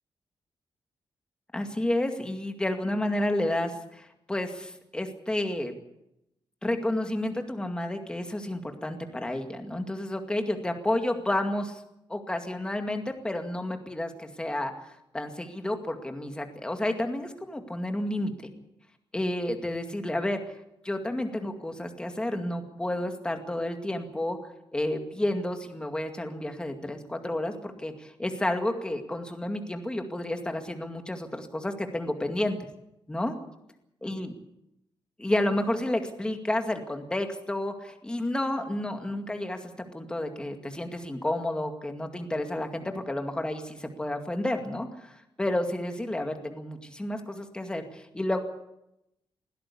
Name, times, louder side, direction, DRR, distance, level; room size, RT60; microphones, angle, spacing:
voice 1, 1.5-5.7 6.6-11.8 12.1-18.3 19.1-20.4 20.8-24.4 24.7-32.6 33.1-33.4 34.0-34.3 35.2-48.4, left 1 dB, 10° left, 5 dB, 2.2 m, -31 dB
21.0 x 16.5 x 8.4 m, 0.83 s
wide cardioid pair, 170°, 9 cm